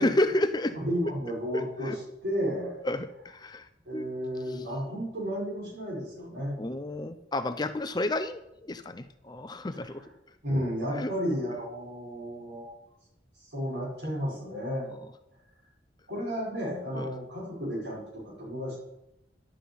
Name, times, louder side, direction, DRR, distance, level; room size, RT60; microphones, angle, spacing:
voice 1, 0.0-0.7 1.5-2.0 2.8-3.7 3.9-4.1 6.6-10.0 10.9-11.1 17.0-17.1, left 1 dB, 20° left, 10 dB, 0.5 m, -30 dB
voice 2, 0.7-2.8 3.9-6.5 9.7-10.0 10.4-12.7 13.5-14.9 16.1-18.8, equal, 65° right, -4 dB, 5.5 m, -33 dB
11.0 x 6.0 x 8.6 m, 0.85 s
head